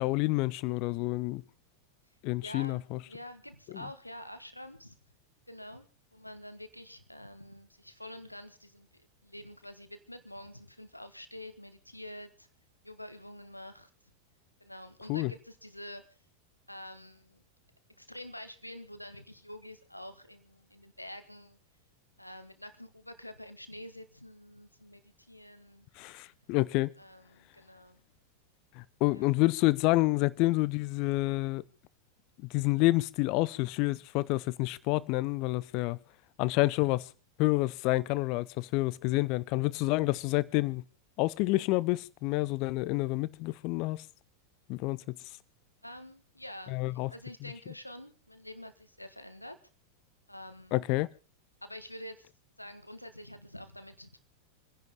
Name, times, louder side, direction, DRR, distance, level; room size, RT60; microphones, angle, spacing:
voice 1, 0.0-1.4 2.2-3.0 3.7-3.8 15.1-15.3 26.0-27.0 28.8-31.6 32.4-36.0 36.4-37.1 37.4-40.8 41.2-44.1 44.7-45.2 46.7-47.1 47.4-47.5 50.7-51.1, left 21 dB, 45° left, 0.8 m, -28 dB
voice 2, 2.4-5.0 5.5-12.5 12.8-13.9 14.6-16.0 16.7-17.4 18.0-21.6 22.2-25.9 27.0-28.0 29.1-29.2 45.8-49.6 50.3-50.7 51.6-52.3 52.6-54.2, left 1 dB, 90° left, 1.5 m, -47 dB
28.5 x 11.0 x 3.6 m
figure-of-eight pair, 90°, 0 cm